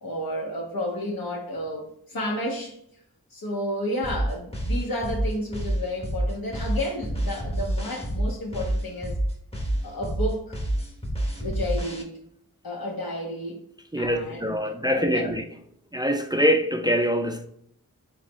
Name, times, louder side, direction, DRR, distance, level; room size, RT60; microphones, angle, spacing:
voice 1, 0.0-2.8 3.3-9.2 9.8-10.6 11.4-12.2 12.6-13.7 14.0-15.4, left 1 dB, 85° left, 1.3 m, -31 dB
sound 1, 4.0-12.0, right 1 dB, 15° left, 0.9 m, -28 dB
voice 2, 13.9-15.4 15.9-17.5, equal, 15° right, 0.4 m, -24 dB
4.1 x 3.7 x 3.1 m
wide cardioid pair, 65°, 34 cm